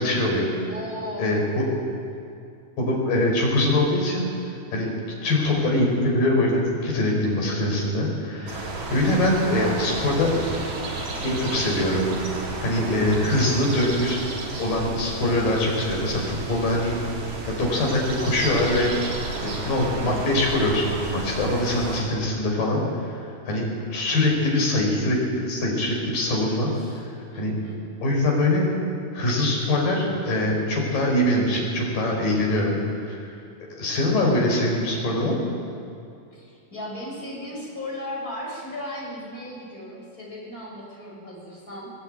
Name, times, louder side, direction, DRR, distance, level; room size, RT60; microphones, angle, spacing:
voice 1, 0.0-0.7 1.2-1.6 2.8-4.3 4.7-4.9 5.2-10.4 11.2-12.1 12.6-14.2 14.6-19.0 19.4-26.7 27.4-27.5 28.0-28.7 29.1-32.8 33.0-33.3 33.8-35.4, left 1 dB, 60° left, -1 dB, 6.6 m, -23 dB
voice 2, 0.7-1.7 2.1-2.2 5.1-5.6 9.5-10.2 24.1-24.5 26.6-27.8 36.3-41.9, left 1 dB, 20° left, -3 dB, 7.0 m, -37 dB
sound 1, 8.5-22.0, right 3 dB, 75° right, 5.2 m, -32 dB
23.0 x 19.0 x 9.1 m, 2.5 s
omnidirectional pair, 4.4 m